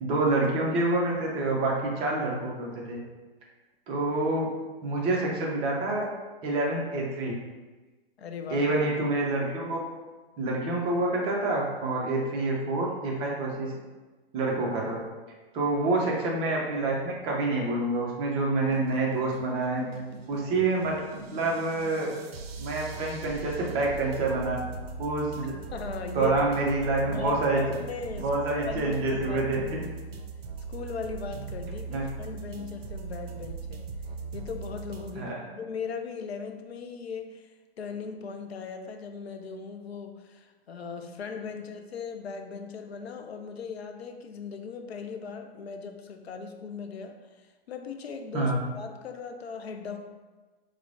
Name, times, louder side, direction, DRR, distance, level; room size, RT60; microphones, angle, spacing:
voice 1, 0.0-3.0 3.9-4.5 4.8-6.1 6.4-7.3 8.5-9.8 10.4-13.7 14.3-15.0 15.5-19.8 20.3-21.0 21.3-22.1 22.6-24.6 25.0-25.5 26.1-27.6 28.2-29.6 31.9-32.0 35.1-35.4 48.3-48.6, right 2 dB, 20° right, -2 dB, 0.4 m, -27 dB
voice 2, 8.2-8.7 25.4-26.3 27.0-28.3 28.6-29.4 29.7-29.8 30.7-33.8 34.3-37.5 37.8-47.2 47.7-50.0, left 5 dB, 85° left, 6 dB, 0.5 m, -38 dB
sound 1, 18.5-35.1, right 4 dB, 75° right, 0.5 m, -40 dB
4.4 x 2.0 x 2.6 m, 1.3 s
hypercardioid pair, 120°, 31 cm